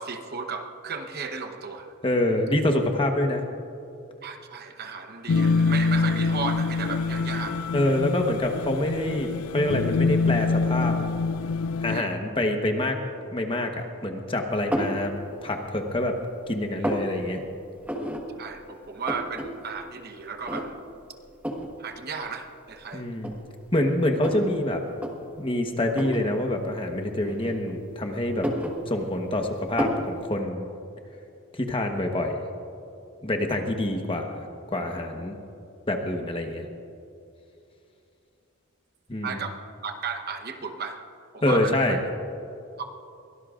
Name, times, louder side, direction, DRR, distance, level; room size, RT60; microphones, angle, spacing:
voice 1, 0.0-1.9 4.2-7.7 11.9-12.4 18.4-20.8 21.8-23.0 39.2-41.0 41.3-42.0 42.8-42.9, right 5 dB, 45° right, 6 dB, 1.0 m, -34 dB
voice 2, 2.0-3.4 7.7-11.0 11.8-13.0 13.3-15.1 15.4-16.2 16.5-17.4 22.9-23.4 23.7-24.8 25.4-28.5 28.9-30.7 31.6-32.4 33.2-34.4 34.7-35.4 35.9-36.6 39.1-39.4 41.4-42.0, left 1 dB, 25° left, 3 dB, 1.1 m, -26 dB
sound 1, 5.3-12.0, left 4 dB, 80° left, 0.4 m, -25 dB
sound 2, 14.7-15.0 15.6-16.2 16.5-17.1 17.8-18.2 18.6-18.7 18.8-19.5 19.8-19.9 20.5-20.9 21.4-21.7 22.6-22.7 23.2-24.5 24.9-25.1 25.9-26.3 27.2-27.9 28.3-29.3 29.8-30.1, equal, 5° right, 1.3 m, -30 dB
23.0 x 18.0 x 2.5 m, 2.6 s
head